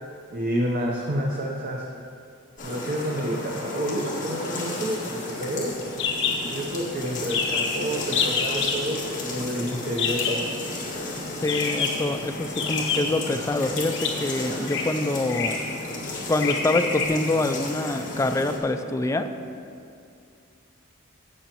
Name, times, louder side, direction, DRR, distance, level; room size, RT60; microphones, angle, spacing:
voice 1, 0.3-1.9 2.6-5.7 6.5-10.4, equal, 45° right, -1 dB, 0.7 m, -29 dB
sound 1, 2.6-18.6, left 2 dB, 40° left, 1.8 m, -34 dB
sound 2, 6.0-6.4 6.7-6.8 7.0-7.1 7.3-7.8 8.1-8.8 10.0-10.4 11.4-12.0 12.6-13.2 13.9-14.1 14.6-14.8 15.3-15.6 16.4-17.1, left 6 dB, 60° left, 1.1 m, -26 dB
voice 2, 11.3-15.6 16.3-19.3, left 2 dB, 15° left, 8 dB, 0.3 m, -25 dB
16.0 x 6.3 x 3.0 m, 2.5 s
head